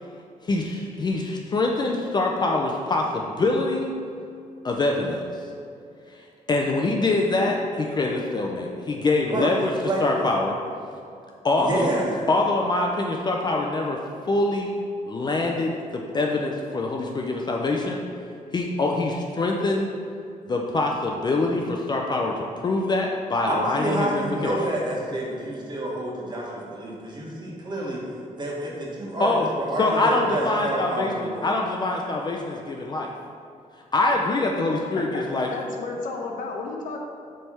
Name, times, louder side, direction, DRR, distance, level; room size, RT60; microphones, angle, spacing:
voice 1, 0.4-3.9 4.6-5.2 6.5-9.7 10.0-10.6 11.4-11.9 12.3-14.0 14.2-14.7 15.1-18.0 18.5-19.9 20.5-24.6 29.2-29.5 29.8-33.1 33.9-35.5, left 2 dB, 30° left, 0 dB, 0.5 m, -24 dB
voice 2, 11.6-12.1 23.5-28.0 28.3-31.4, right 1 dB, 35° right, -4 dB, 1.6 m, -28 dB
voice 3, 34.9-37.0, left 3 dB, 75° left, 1 dB, 1.0 m, -33 dB
7.5 x 3.4 x 5.5 m, 2.5 s
cardioid pair, 120°, 14 cm